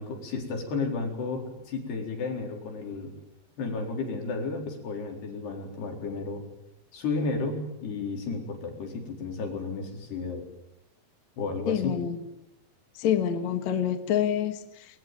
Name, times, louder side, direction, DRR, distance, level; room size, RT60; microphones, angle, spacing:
voice 1, 0.0-3.1 3.6-6.4 6.9-10.4 11.4-11.9, left 4 dB, 85° left, 3 dB, 6.4 m, -32 dB
voice 2, 11.7-12.2 12.9-15.0, left 9 dB, 55° left, 8 dB, 2.6 m, -27 dB
24.5 x 24.0 x 9.3 m, 0.87 s
omnidirectional pair, 4.6 m